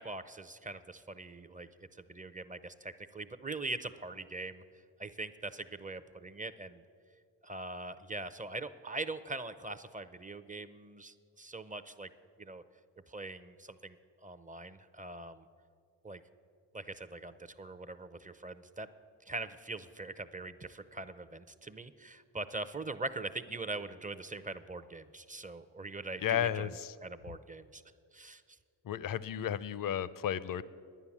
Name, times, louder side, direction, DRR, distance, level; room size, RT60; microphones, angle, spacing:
voice 1, 0.0-4.6 5.0-6.8 7.4-12.1 12.4-12.6 13.1-15.5 16.0-16.2 16.7-18.9 19.3-26.8 27.0-27.8 28.1-28.4, right 2 dB, 20° right, 12 dB, 0.6 m, -42 dB
voice 2, 26.2-26.9 28.8-30.6, left 10 dB, 50° left, 17 dB, 0.6 m, -33 dB
11.0 x 9.6 x 7.2 m, 2.2 s
cardioid pair, 50°, 45 cm